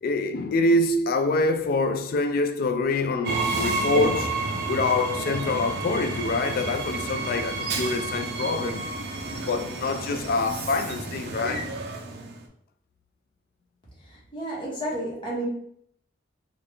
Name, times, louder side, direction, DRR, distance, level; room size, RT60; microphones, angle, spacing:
voice 1, 0.0-4.4 4.7-8.9 9.3-11.7, left 2 dB, 50° left, 0.3 m, -25 dB
Train, 3.2-12.4, right 3 dB, 55° right, 0.5 m, -30 dB
voice 2, 14.0-15.5, right 1 dB, 25° left, 1.1 m, -32 dB
3.6 x 2.3 x 3.2 m
head